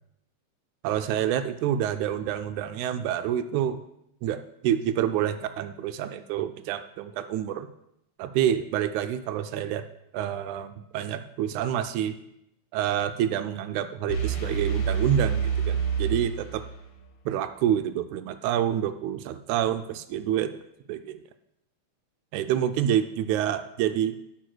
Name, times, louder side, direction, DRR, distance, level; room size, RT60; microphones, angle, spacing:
voice 1, 0.8-3.8 4.2-7.7 8.2-9.8 10.1-12.2 12.7-16.6 17.3-20.6 20.9-21.2 22.3-24.2, right 10 dB, 80° right, 10 dB, 1.9 m, -27 dB
sound 1, 14.1-17.0, right 6 dB, 60° left, 2.1 m, -27 dB
11.0 x 4.7 x 6.1 m, 0.81 s
omnidirectional pair, 3.4 m